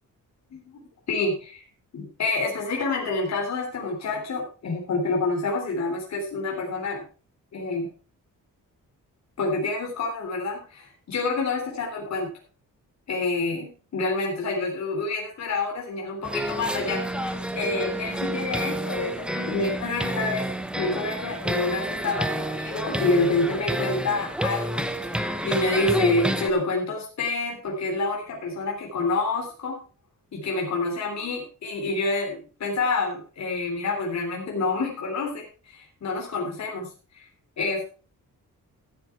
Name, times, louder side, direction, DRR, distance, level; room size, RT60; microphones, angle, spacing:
voice 1, 0.5-1.6 1.9-7.0 7.5-7.9 9.4-12.3 13.1-20.5 20.8-29.8 30.3-37.3 37.6-37.8, left 3 dB, 55° left, 0 dB, 3.5 m, -28 dB
sound 1, 16.2-26.5, right 1 dB, 5° right, 0.8 m, -29 dB
14.5 x 7.9 x 4.5 m, 0.36 s
wide cardioid pair, 160°, 33 cm